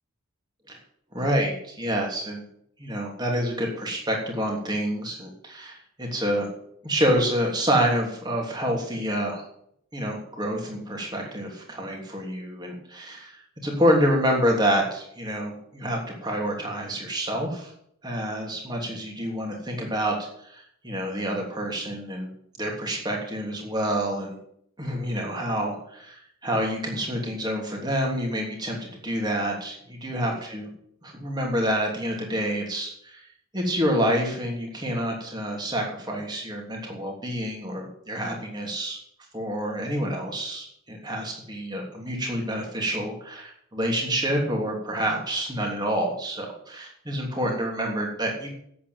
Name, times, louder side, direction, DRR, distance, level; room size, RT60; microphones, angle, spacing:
voice 1, 1.1-2.4 2.8-6.5 6.8-9.4 9.9-17.7 18.0-20.1 20.4-22.3 22.6-24.4 24.8-30.7 31.0-33.2 33.5-39.0 39.3-48.5, equal, 20° right, 0 dB, 3.0 m, -27 dB
8.8 x 8.4 x 9.2 m, 0.69 s
head